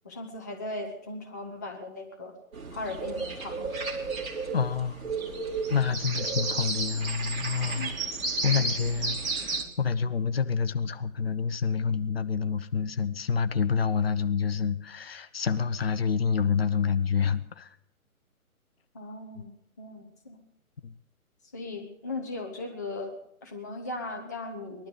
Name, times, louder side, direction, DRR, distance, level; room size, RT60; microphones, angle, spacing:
voice 1, 0.0-2.4 2.7-3.7 7.8-7.9 18.9-20.4 21.5-24.9, left 2 dB, 15° left, 3 dB, 0.6 m, -38 dB
sound 1, 2.5-9.6, right 3 dB, 65° right, 2.9 m, -32 dB
voice 2, 4.5-5.1 5.7-7.9 8.4-17.7 20.8-21.0, left 6 dB, 45° left, 12 dB, 0.8 m, -28 dB
20.0 x 12.0 x 5.0 m, 0.81 s
figure-of-eight pair, 145°, 44 cm